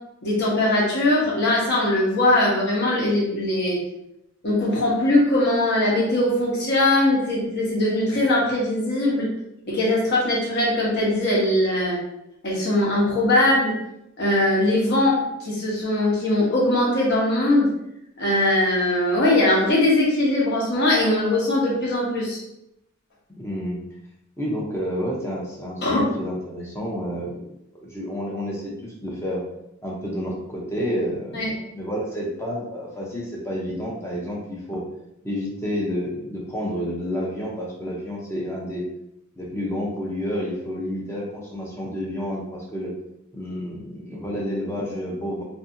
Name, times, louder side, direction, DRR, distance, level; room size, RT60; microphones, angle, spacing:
voice 1, 0.2-3.8 4.4-9.3 9.7-12.0 12.4-13.7 14.2-17.7 18.2-22.4 25.8-26.1 31.3-31.5, left 1 dB, 50° left, -4 dB, 0.9 m, -21 dB
voice 2, 23.4-23.8 24.4-27.5 27.7-29.4 29.8-34.8 35.2-38.9 39.4-42.9 43.3-45.4, equal, 10° left, -3 dB, 0.5 m, -30 dB
2.6 x 2.6 x 2.5 m, 0.83 s
head